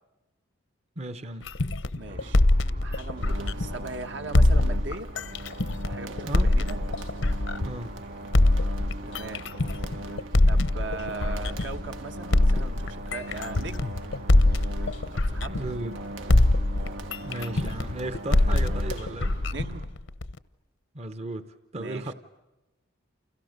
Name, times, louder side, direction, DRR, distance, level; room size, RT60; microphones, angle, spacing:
voice 1, 1.0-1.5 6.2-6.5 7.6-8.0 15.5-16.0 17.2-19.4 20.9-22.1, right 1 dB, 35° right, 0.9 m, -35 dB
sound 1, 1.5-3.9 4.3-7.9 8.3-11.9 12.3-16.0 16.3-20.4, left 1 dB, 75° left, 0.9 m, -23 dB
voice 2, 1.9-2.4 2.8-5.1 5.8-6.8 9.1-9.5 10.5-14.0 15.1-15.7 19.5-19.9 21.7-22.1, right 3 dB, 65° right, 1.5 m, -39 dB
sound 2, 2.1-19.9, right 1 dB, 50° right, 2.4 m, -44 dB
sound 3, 3.1-19.6, right 2 dB, 80° right, 1.5 m, -41 dB
29.5 x 29.0 x 6.7 m
head